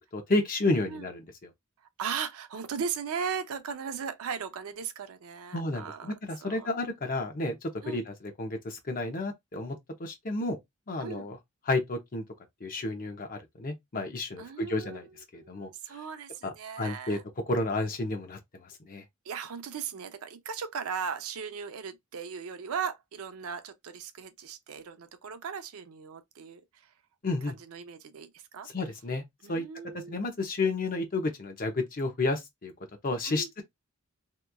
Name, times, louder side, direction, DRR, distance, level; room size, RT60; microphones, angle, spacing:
voice 1, 0.1-1.3 5.5-10.6 10.9-11.4 11.7-12.2 12.6-15.1 15.3-15.7 16.4-17.2 17.5-19.0 27.2-27.5 28.7-29.2 29.5-29.6 30.1-32.7 33.0-33.6, left 2 dB, 40° left, 0.6 m, -31 dB
voice 2, 2.0-6.1 6.4-6.7 7.8-8.0 11.0-11.3 14.4-17.2 19.3-26.6 27.6-28.7 29.4-30.1 33.3-33.6, right 6 dB, 70° right, 0.4 m, -37 dB
2.9 x 2.3 x 2.2 m
head